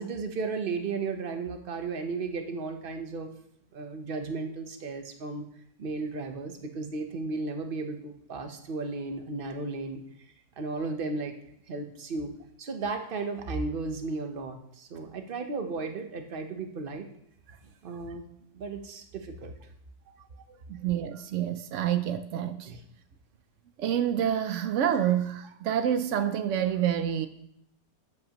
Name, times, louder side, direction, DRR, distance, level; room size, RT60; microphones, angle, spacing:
voice 1, 0.0-3.3 3.7-5.4 5.8-10.0 10.6-11.3 11.7-12.3 12.6-17.0 17.8-18.3 18.5-19.5 22.7-22.8, right 3 dB, 40° right, 6 dB, 0.8 m, -34 dB
voice 2, 20.7-22.7 23.8-27.3, right 9 dB, 90° right, 10 dB, 0.6 m, -27 dB
13.5 x 7.8 x 3.0 m, 0.74 s
omnidirectional pair, 1.8 m